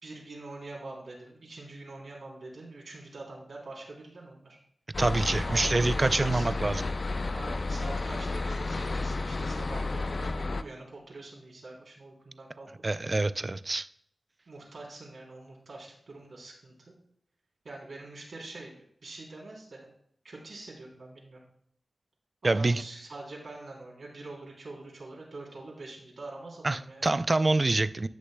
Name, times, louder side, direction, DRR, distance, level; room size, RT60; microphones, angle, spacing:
voice 1, 0.0-4.6 5.5-6.6 7.3-12.7 14.5-17.0 17.6-19.9 20.2-21.4 22.4-27.1, right 2 dB, 75° right, -2 dB, 3.3 m, -44 dB
sound 1, 4.9-10.6, left 3 dB, 55° left, 0.5 m, -32 dB
voice 2, 5.0-6.8 12.8-13.9 22.4-22.8 26.6-28.1, right 2 dB, 40° right, 14 dB, 0.4 m, -26 dB
15.5 x 6.4 x 2.2 m, 0.67 s
cardioid pair, 60°, 0 cm